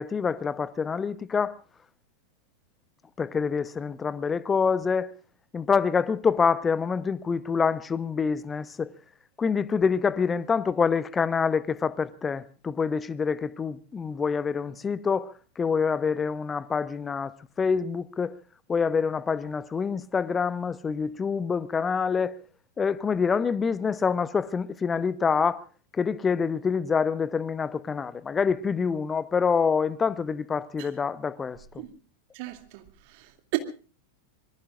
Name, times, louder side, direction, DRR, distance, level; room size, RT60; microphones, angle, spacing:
voice 1, 0.0-1.6 3.2-5.1 5.5-8.9 9.4-18.4 18.7-22.4 22.8-25.6 25.9-31.8, left 5 dB, 15° left, 0.9 m, -26 dB
voice 2, 32.3-33.6, right 24 dB, 45° right, 2.5 m, -34 dB
25.5 x 22.0 x 2.5 m
figure-of-eight pair, 90°, 0 cm